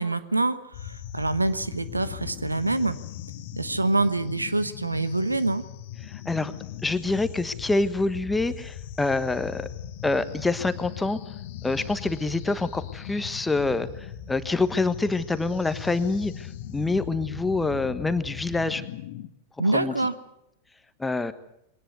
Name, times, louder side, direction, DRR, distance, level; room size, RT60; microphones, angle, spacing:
voice 1, 0.0-3.0 3.6-5.6 19.6-20.1, right 2 dB, 80° right, 14 dB, 1.2 m, -25 dB
sound 1, 0.7-19.3, left 10 dB, 50° left, 1.5 m, -39 dB
voice 2, 6.0-6.5 6.8-9.7 10.0-11.2 11.6-18.8 19.6-20.1 21.0-21.3, left 3 dB, 10° left, 12 dB, 1.3 m, -26 dB
22.5 x 18.5 x 8.1 m, 0.81 s
figure-of-eight pair, 90°, 0 cm